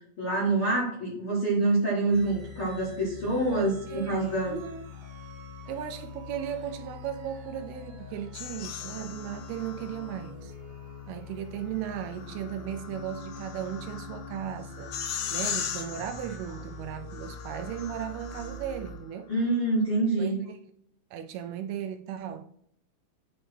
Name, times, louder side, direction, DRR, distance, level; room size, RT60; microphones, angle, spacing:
voice 1, 0.2-4.5 19.3-20.4, right 2 dB, 50° left, 1.7 m, -26 dB
sound 1, 2.1-19.0, left 4 dB, 50° right, 2.0 m, -44 dB
voice 2, 3.5-4.9 5.7-10.5 11.1-19.3 20.2-20.6 21.1-22.5, right 10 dB, 80° right, 2.4 m, -36 dB
sound 2, 8.3-10.3 11.8-18.9, left 8 dB, 80° left, 2.7 m, -39 dB
9.8 x 3.4 x 4.3 m
omnidirectional pair, 4.7 m